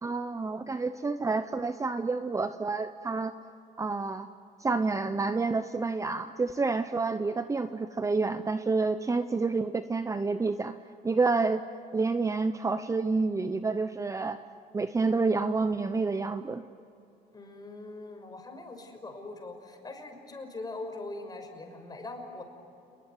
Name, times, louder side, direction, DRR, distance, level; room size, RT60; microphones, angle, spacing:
voice 1, 0.0-3.3 3.8-4.3 4.6-10.7 11.0-11.6 11.9-14.4 14.7-16.6, right 3 dB, 20° right, 10 dB, 0.8 m, -29 dB
voice 2, 17.3-22.4, left 2 dB, 25° left, 5 dB, 5.8 m, -42 dB
29.5 x 20.5 x 9.6 m, 2.8 s
cardioid pair, 110°, 17 cm